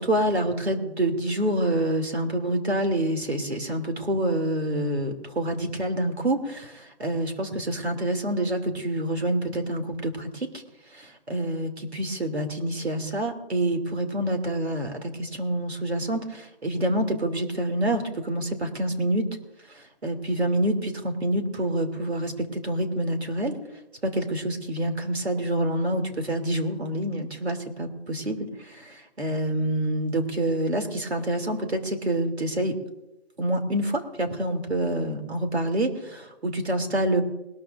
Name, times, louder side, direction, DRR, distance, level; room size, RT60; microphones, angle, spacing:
voice 1, 0.0-10.5 10.9-19.3 20.0-23.6 24.0-32.8 33.4-37.2, right 1 dB, 75° right, 4 dB, 2.9 m, -27 dB
21.0 x 13.0 x 2.6 m, 0.95 s
figure-of-eight pair, 180°, 33 cm